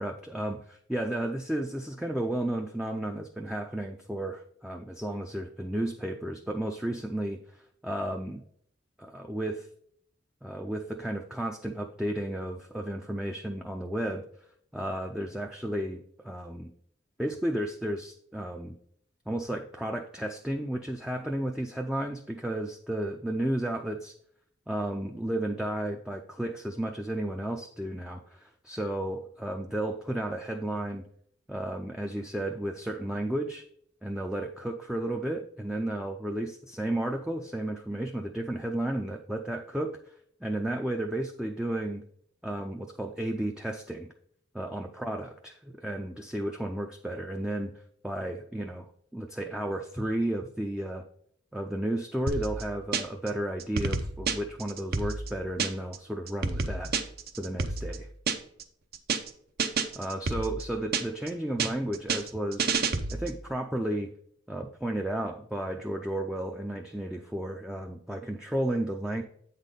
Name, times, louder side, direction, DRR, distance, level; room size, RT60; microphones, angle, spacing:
voice 1, 0.0-8.4 9.0-9.7 10.4-14.2 14.7-16.7 17.2-18.8 19.3-24.1 24.7-31.1 31.5-33.7 34.0-40.0 40.4-42.0 42.4-44.1 44.5-47.7 48.0-48.9 49.1-51.1 51.5-56.9 57.4-58.1 59.9-62.7 63.1-64.1 64.5-69.2, right 1 dB, 5° right, 2 dB, 0.4 m, -33 dB
sound 1, 52.3-53.3 53.6-56.0 56.3-58.6 58.9-59.3 59.6-61.3 61.6-63.4, right 4 dB, 55° right, 0.6 m, -30 dB
8.2 x 4.1 x 5.1 m, 0.65 s
head